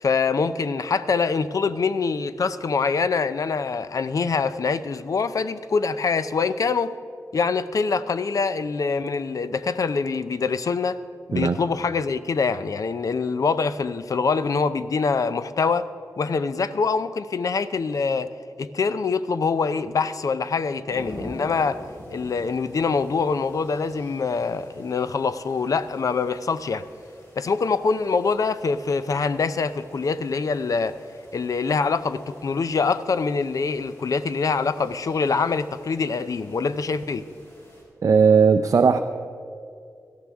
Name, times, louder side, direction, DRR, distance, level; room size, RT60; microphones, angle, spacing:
voice 1, 0.0-6.9 7.3-11.0 11.3-15.9 16.2-18.3 18.6-21.8 22.1-26.8 27.4-31.0 31.3-37.2, left 4 dB, 60° left, 0.5 m, -24 dB
sound 1, 20.9-37.8, equal, 40° left, 4.2 m, -46 dB
voice 2, 38.0-39.0, right 5 dB, 55° right, 0.5 m, -17 dB
17.5 x 13.5 x 3.5 m
wide cardioid pair, 115°, 7 cm